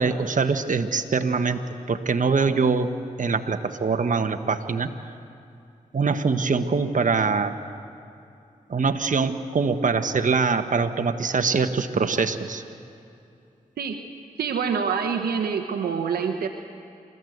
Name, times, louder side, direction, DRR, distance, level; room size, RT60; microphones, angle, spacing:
voice 1, 0.0-2.9 3.2-4.9 5.9-7.6 8.7-12.6, right 4 dB, 55° right, 7 dB, 1.4 m, -23 dB
voice 2, 14.4-16.5, right 6 dB, 85° right, 4 dB, 1.1 m, -26 dB
28.0 x 14.0 x 8.1 m, 2.6 s
supercardioid pair, 40°, 16 cm